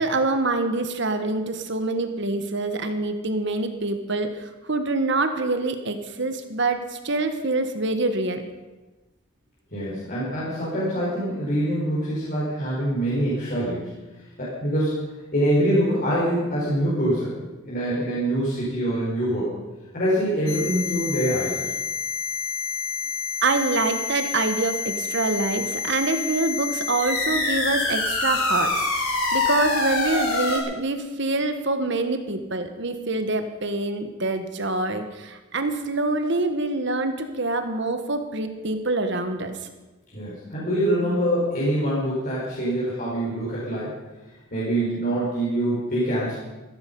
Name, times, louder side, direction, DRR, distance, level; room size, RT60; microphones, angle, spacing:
voice 1, 0.0-8.4 23.4-39.5, right 2 dB, 55° right, 8 dB, 1.4 m, -25 dB
voice 2, 9.7-13.9 14.4-15.0 15.3-17.3 17.6-19.5 19.9-21.7 40.1-44.0 44.5-46.4, right 1 dB, 40° left, -8 dB, 4.8 m, -24 dB
sound 1, 20.5-30.6, left 4 dB, 85° left, 3.9 m, -27 dB
15.0 x 15.0 x 5.5 m, 1.2 s
head